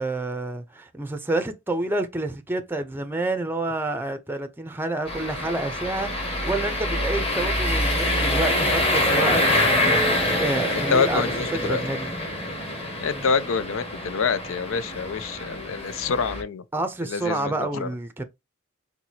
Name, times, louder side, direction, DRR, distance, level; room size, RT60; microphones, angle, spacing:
voice 1, 0.0-12.1 13.1-13.3 16.7-18.2, right 2 dB, 10° right, 0.6 m, -29 dB
sound 1, 5.1-16.4, left 1 dB, 30° left, 1.7 m, -25 dB
voice 2, 10.9-11.8 13.0-16.6 17.0-17.9, left 5 dB, 75° left, 0.5 m, -26 dB
4.5 x 3.9 x 2.7 m
head